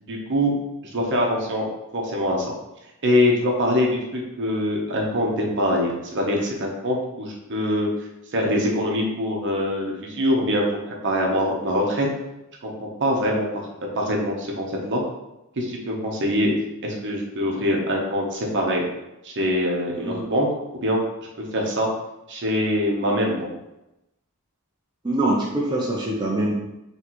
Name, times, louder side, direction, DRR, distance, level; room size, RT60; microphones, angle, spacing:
voice 1, 0.0-0.5 0.9-1.6 1.9-2.4 3.0-7.9 8.3-12.1 12.6-12.7 13.0-13.5 14.0-15.0 15.6-16.5 16.8-18.8 19.2-20.5 20.8-21.0 21.5-21.9 22.3-23.5, equal, 55° right, -1 dB, 0.9 m, -23 dB
voice 2, 25.0-26.5, right 1 dB, 20° right, -4 dB, 0.5 m, -24 dB
4.1 x 3.2 x 3.0 m, 0.93 s
head